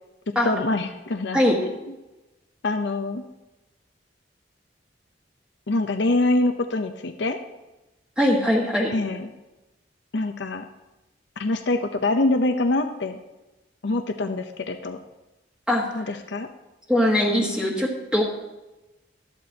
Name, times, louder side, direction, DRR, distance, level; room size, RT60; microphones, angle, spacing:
voice 1, 0.4-1.4 2.6-3.2 5.7-7.4 8.9-9.3 10.1-10.6 11.4-13.2 13.8-15.0 15.9-16.5, left 2 dB, 70° left, 6 dB, 0.7 m, -24 dB
voice 2, 8.2-8.9 15.7-15.9 16.9-18.2, left 1 dB, 5° right, -2 dB, 1.6 m, -21 dB
13.0 x 12.0 x 2.8 m, 1.0 s
head